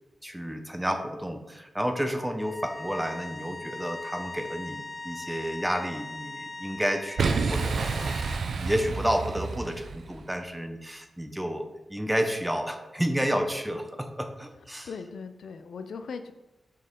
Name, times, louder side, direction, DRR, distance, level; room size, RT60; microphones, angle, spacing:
voice 1, 0.2-8.1 8.6-14.9, equal, 5° right, 6 dB, 0.7 m, -31 dB
sound 1, 2.4-8.5, left 2 dB, 30° left, 0.3 m, -40 dB
Boom, 7.2-10.2, right 4 dB, 70° right, 0.5 m, -29 dB
voice 2, 14.8-16.3, left 5 dB, 90° left, 9 dB, 0.5 m, -39 dB
6.6 x 5.4 x 3.8 m, 1.0 s
wide cardioid pair, 120°, 0 cm